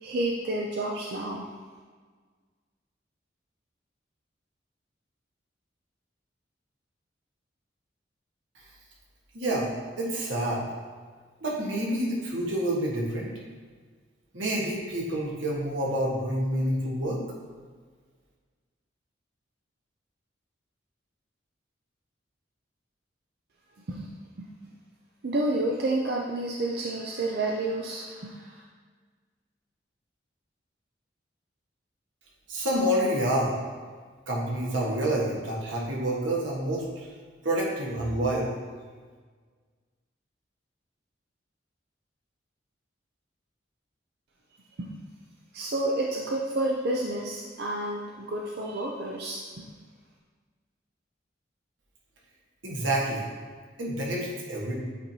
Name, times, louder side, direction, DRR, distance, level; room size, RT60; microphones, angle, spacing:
voice 1, 0.0-1.5 23.9-24.5 25.2-28.6 44.8-44.9 45.5-49.6, right 2 dB, 55° right, -2 dB, 0.5 m, -30 dB
voice 2, 9.3-9.7 10.0-10.7 11.4-13.3 14.3-17.2 32.5-33.6 34.3-37.1 37.4-38.5 52.6-53.3 53.8-54.7, right 1 dB, 85° right, -3 dB, 1.4 m, -28 dB
8.1 x 4.5 x 2.8 m, 1.5 s
head